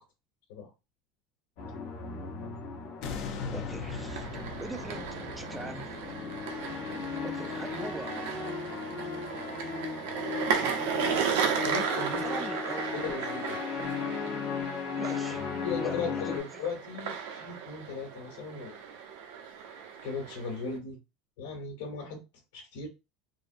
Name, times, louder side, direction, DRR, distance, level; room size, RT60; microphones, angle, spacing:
sound 1, 1.6-16.4, left 6 dB, 60° left, 1.0 m, -37 dB
sound 2, 3.0-8.1 8.6-8.7, left 5 dB, 45° left, 0.5 m, -41 dB
voice 1, 3.5-5.1 5.4-6.0 7.1-8.2 10.5-10.9 12.1-12.9 15.0-16.7, right 2 dB, 5° right, 0.3 m, -42 dB
sound 3, 3.8-20.8, right 7 dB, 75° right, 0.6 m, -35 dB
voice 2, 11.6-12.2 12.9-13.6 15.6-18.7 20.0-21.0 21.4-22.2 22.5-22.9, left 5 dB, 85° left, 1.3 m, -37 dB
3.7 x 2.1 x 2.6 m
cardioid pair, 170°, 0 cm